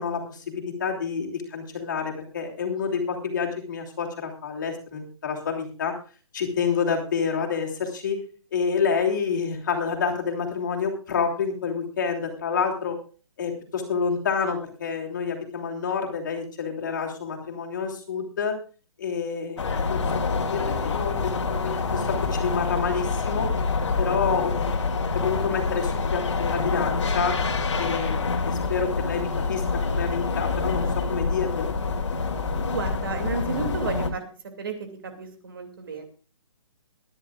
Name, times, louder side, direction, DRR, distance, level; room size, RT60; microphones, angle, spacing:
voice 1, 0.0-5.9 6.3-8.2 8.5-13.0 13.4-18.5 19.0-23.5 24.0-24.5 25.1-27.4 27.8-31.7, left 6 dB, 35° left, 1 dB, 3.0 m, -28 dB
sound 1, 19.6-34.1, left 4 dB, 60° left, 2.6 m, -26 dB
voice 2, 32.7-34.2 34.6-36.0, right 5 dB, 40° right, 5 dB, 2.6 m, -32 dB
24.0 x 11.0 x 2.4 m, 0.38 s
hypercardioid pair, 180°, 17 cm